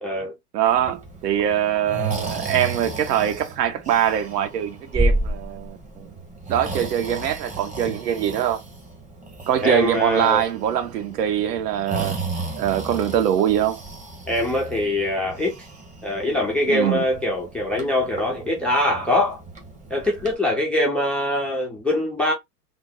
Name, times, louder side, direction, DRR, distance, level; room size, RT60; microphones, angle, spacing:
voice 1, 0.0-0.3 9.6-10.4 14.3-15.6 16.0-19.4 19.9-22.3, left 1 dB, 5° left, 0.4 m, -23 dB
voice 2, 0.5-6.1 6.5-8.6 9.5-12.3 12.6-13.8 16.7-17.1, right 10 dB, 75° right, 1.0 m, -23 dB
Breathing, 0.7-20.4, right 2 dB, 15° right, 0.9 m, -33 dB
3.5 x 2.0 x 3.6 m
hypercardioid pair, 115°, 49 cm